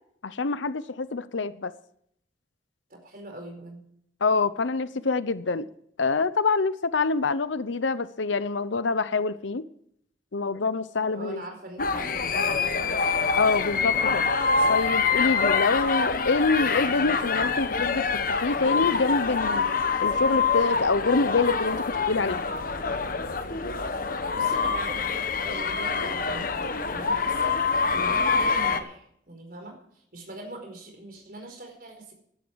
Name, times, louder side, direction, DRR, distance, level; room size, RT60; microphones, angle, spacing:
voice 1, 0.2-1.7 4.2-5.7 6.0-9.6 10.3-11.4 13.3-14.3 14.7-18.0 18.3-19.7 20.0-22.4, left 4 dB, 80° left, 0.8 m, -26 dB
voice 2, 2.9-3.9 11.1-13.0 23.3-32.1, right 1 dB, 50° right, 4.7 m, -42 dB
sound 1, 11.8-28.8, left 5 dB, 45° left, 1.1 m, -25 dB
15.5 x 11.5 x 4.7 m
head